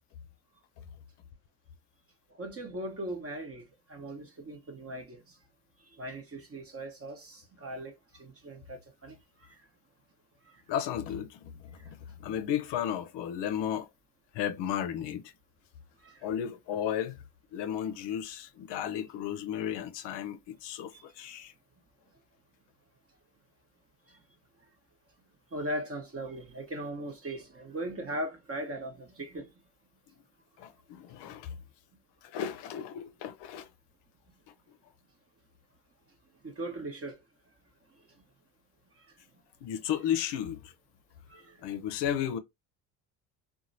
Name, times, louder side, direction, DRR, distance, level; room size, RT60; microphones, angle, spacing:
voice 1, 2.4-3.6 3.9-5.2 6.0-7.9 8.2-9.2 16.0-16.1 20.9-21.0 25.5-29.5 36.4-37.2 41.3-41.6, right 1 dB, 30° right, 1.0 m, -38 dB
voice 2, 10.7-13.9 14.3-15.3 16.2-17.2 17.5-21.5 30.6-31.6 32.2-33.7 39.6-40.7 41.6-42.4, left 9 dB, 60° left, 0.6 m, -34 dB
2.9 x 2.3 x 2.6 m
hypercardioid pair, 65°, 49 cm